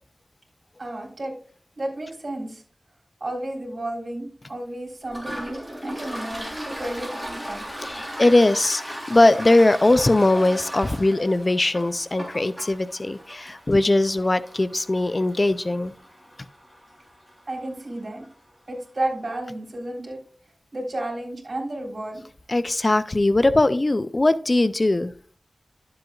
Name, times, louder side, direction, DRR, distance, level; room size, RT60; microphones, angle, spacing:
voice 1, 0.8-1.3 1.8-2.6 3.2-7.6 17.5-18.3 18.7-20.2 20.7-22.2, right 1 dB, 50° right, 0 dB, 3.5 m, -32 dB
Toilet flush, 5.1-18.4, equal, 5° left, 3.3 m, -38 dB
voice 2, 7.8-15.9 22.5-25.1, left 2 dB, 35° left, 13 dB, 0.4 m, -20 dB
12.0 x 7.7 x 2.4 m, 0.43 s
wide cardioid pair, 85°, 0 cm